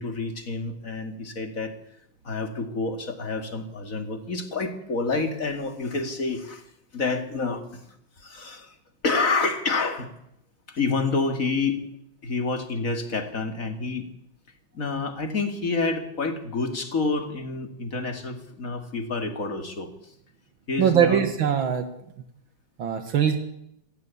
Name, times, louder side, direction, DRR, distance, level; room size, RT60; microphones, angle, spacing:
voice 1, 0.0-1.7 2.2-6.6 6.9-7.8 8.2-8.7 9.0-10.1 10.7-11.8 12.2-14.1 14.7-20.1 20.7-21.3, left 3 dB, 40° left, 7 dB, 2.7 m, -28 dB
voice 2, 20.8-21.9 22.8-23.4, right 8 dB, 75° right, 7 dB, 2.3 m, -21 dB
26.5 x 16.5 x 8.5 m, 0.79 s
omnidirectional pair, 2.2 m